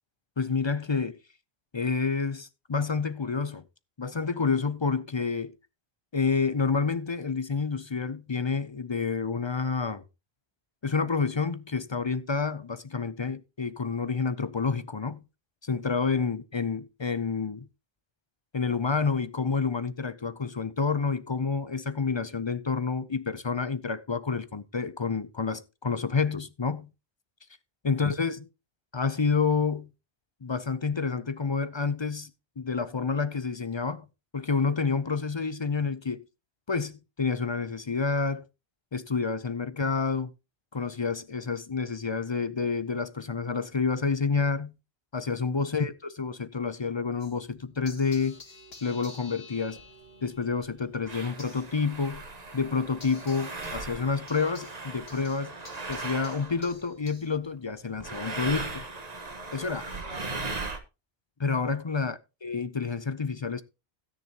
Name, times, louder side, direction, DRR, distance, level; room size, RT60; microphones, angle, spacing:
voice 1, 0.4-1.2 1.7-3.7 4.0-5.6 6.1-10.0 10.8-15.2 15.6-17.7 18.5-26.9 27.8-28.5 28.9-29.9 30.4-34.1 34.3-36.2 36.7-38.5 38.9-40.3 40.7-44.8 45.1-48.4 48.8-49.8 50.2-52.3 52.5-55.5 55.9-58.8 59.5-59.9 61.4-63.6, left 5 dB, 35° left, 0.5 m, -29 dB
sound 1, 47.2-57.4, left 3 dB, 70° left, 2.2 m, -51 dB
sound 2, 49.8-49.9 50.6-50.7 51.0-56.9 58.0-60.8, right 3 dB, 40° right, 1.4 m, -38 dB
13.5 x 9.7 x 2.9 m
omnidirectional pair, 1.1 m